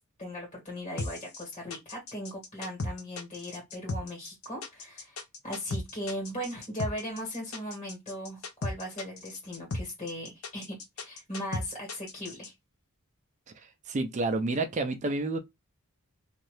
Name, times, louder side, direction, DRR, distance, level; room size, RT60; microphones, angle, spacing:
voice 1, 0.2-12.5, equal, 35° left, 1.5 m, -38 dB
sound 1, 1.0-12.5, left 2 dB, 75° left, 0.7 m, -36 dB
voice 2, 13.6-15.4, right 2 dB, 35° right, 0.4 m, -30 dB
2.7 x 2.4 x 3.2 m
head